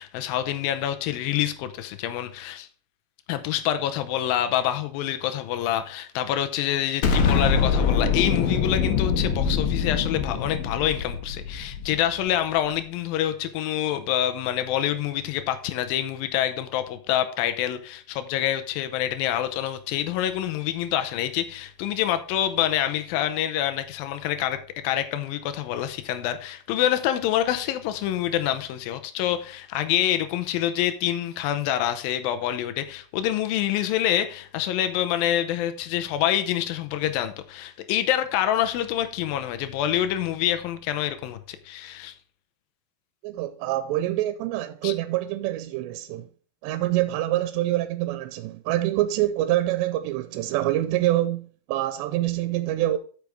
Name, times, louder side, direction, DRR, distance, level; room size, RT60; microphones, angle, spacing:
voice 1, 0.0-2.7 3.3-24.6 24.8-42.1 44.8-44.9, left 11 dB, 85° left, 2.1 m, -26 dB
Explosion, 7.0-12.2, left 6 dB, 65° left, 2.8 m, -24 dB
voice 2, 43.2-46.3 46.6-53.0, right 14 dB, 90° right, 2.8 m, -26 dB
8.4 x 6.6 x 4.6 m
omnidirectional pair, 4.9 m